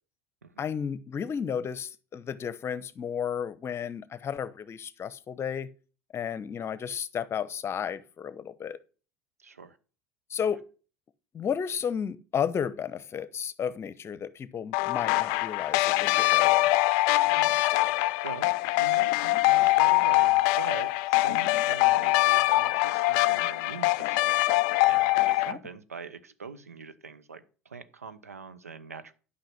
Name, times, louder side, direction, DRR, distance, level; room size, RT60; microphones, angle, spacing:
voice 1, 0.6-5.7 6.1-8.8 10.3-10.6 11.3-16.7 25.5-25.6, left 7 dB, 35° left, 0.9 m, -33 dB
voice 2, 9.4-9.8 17.3-24.3 24.6-29.1, right 5 dB, 85° right, 0.9 m, -43 dB
sound 1, 14.7-25.5, left 18 dB, 60° left, 0.5 m, -23 dB
12.0 x 5.7 x 5.9 m
figure-of-eight pair, 70°, 8 cm